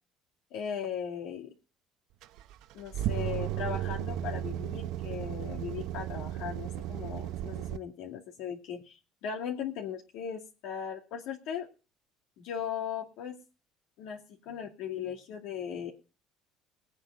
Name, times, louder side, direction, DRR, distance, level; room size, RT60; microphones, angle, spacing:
voice 1, 0.5-1.5 2.7-11.7 12.4-13.4 14.0-14.2 14.5-15.9, left 8 dB, 75° left, -1 dB, 2.4 m, -38 dB
sound 1, 2.2-7.8, right 12 dB, 70° right, 0.8 m, -34 dB
19.0 x 8.7 x 5.0 m, 0.34 s
cardioid pair, 135°, 0 cm